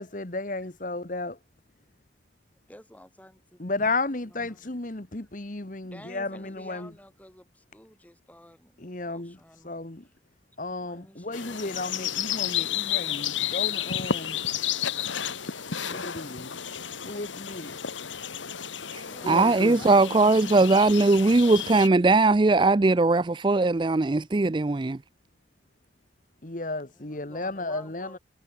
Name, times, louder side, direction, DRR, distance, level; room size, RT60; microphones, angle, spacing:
voice 1, 0.0-1.4 3.6-6.9 8.8-9.4 9.6-10.1 10.6-14.4 15.9-16.6 17.0-17.8 19.2-19.8 26.4-28.2, left 2 dB, 45° left, 1.4 m, -33 dB
voice 2, 2.7-3.8 4.2-4.7 4.9-5.3 5.8-9.7 10.0-10.1 10.8-11.9 19.0-21.7 26.9-28.2, equal, 10° left, 4.8 m, -51 dB
sound 1, 11.3-21.9, left 9 dB, 90° left, 1.7 m, -32 dB
voice 3, 19.3-25.0, right 3 dB, 25° right, 0.4 m, -20 dB
head